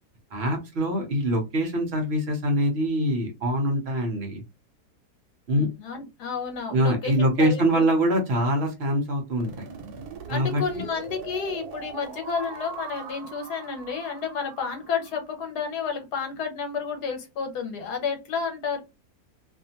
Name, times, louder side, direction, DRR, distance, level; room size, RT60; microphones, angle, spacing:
voice 1, 0.3-4.4 5.5-5.7 6.7-9.7 10.3-10.8, equal, 55° right, 3 dB, 0.8 m, -24 dB
voice 2, 5.6-7.8 10.3-18.8, left 6 dB, 80° left, 4 dB, 1.4 m, -31 dB
sound 1, 9.4-15.3, right 6 dB, 80° right, 1.2 m, -41 dB
2.6 x 2.5 x 2.7 m, 0.24 s
omnidirectional pair, 1.7 m